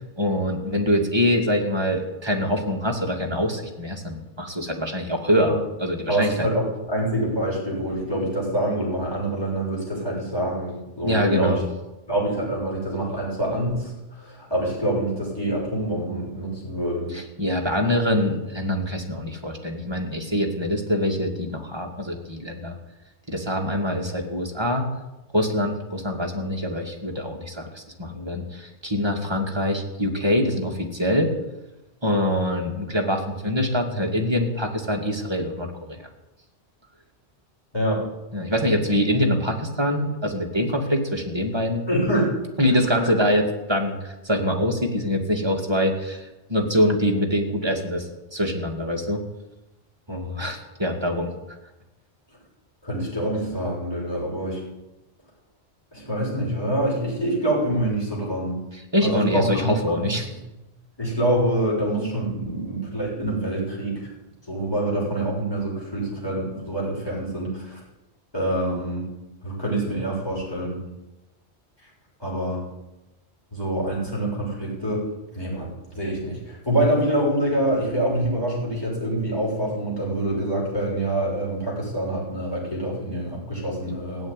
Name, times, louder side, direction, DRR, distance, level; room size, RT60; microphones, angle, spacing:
voice 1, 0.2-5.5 5.8-6.5 11.0-11.6 17.1-22.8 23.3-24.9 25.3-31.3 32.0-36.0 38.3-41.9 42.6-49.2 50.1-51.3 58.9-60.3, equal, 25° right, 1 dB, 2.3 m, -24 dB
voice 2, 6.1-11.6 12.1-17.2 37.7-38.0 41.9-42.4 42.9-43.1 52.8-54.6 55.9-58.6 59.0-60.1 61.0-64.1 64.5-67.8 68.3-69.1 69.4-70.8 72.2-72.6 73.5-75.0 75.3-84.3, right 1 dB, 20° left, -5 dB, 6.7 m, -26 dB
16.5 x 7.9 x 9.9 m, 1.0 s
omnidirectional pair, 1.1 m